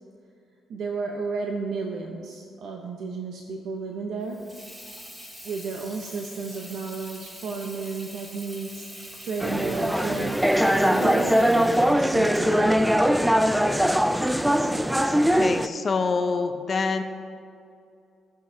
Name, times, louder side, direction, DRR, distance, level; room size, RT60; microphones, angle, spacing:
voice 1, 0.7-4.4 5.4-10.4 10.7-13.1, right 4 dB, 75° right, 1 dB, 0.8 m, -33 dB
Water tap faucet / Sink (filling or washing), 4.2-13.8, equal, 20° right, 2.0 m, -44 dB
sound 1, 9.4-15.7, equal, 5° right, 0.3 m, -21 dB
voice 2, 15.3-17.0, left 4 dB, 40° left, 6 dB, 0.6 m, -26 dB
17.5 x 6.2 x 2.8 m, 2.5 s
cardioid pair, 90°, 0 cm